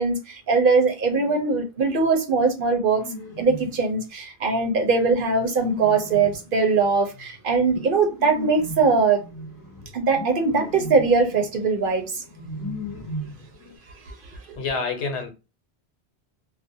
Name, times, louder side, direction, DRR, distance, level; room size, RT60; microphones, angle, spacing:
voice 1, 0.0-3.0 3.4-9.2 9.9-12.2 14.1-14.2 14.5-14.6, right 4 dB, 55° right, 0.7 m, -21 dB
sound 1, 2.9-3.8 4.6-13.8, left 1 dB, 20° left, 0.7 m, -37 dB
voice 2, 14.6-15.3, left 4 dB, 90° left, 1.0 m, -27 dB
2.4 x 2.1 x 2.6 m
omnidirectional pair, 1.1 m